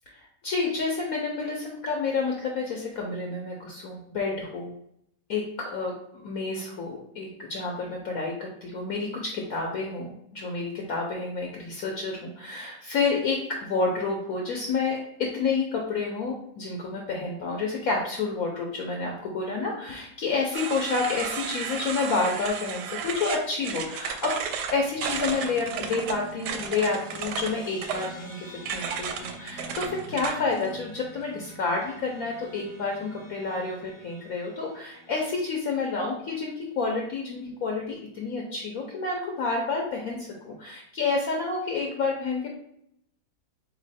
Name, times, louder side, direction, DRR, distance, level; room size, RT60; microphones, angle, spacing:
voice 1, 0.1-4.7 5.3-24.3 24.7-42.5, left 4 dB, 60° left, 0 dB, 1.1 m, -29 dB
sound 1, 20.5-30.7, right 6 dB, 75° right, 1.1 m, -33 dB
sound 2, 25.0-35.7, right 1 dB, 30° left, 0.6 m, -46 dB
4.0 x 3.0 x 4.1 m, 0.75 s
omnidirectional pair, 1.9 m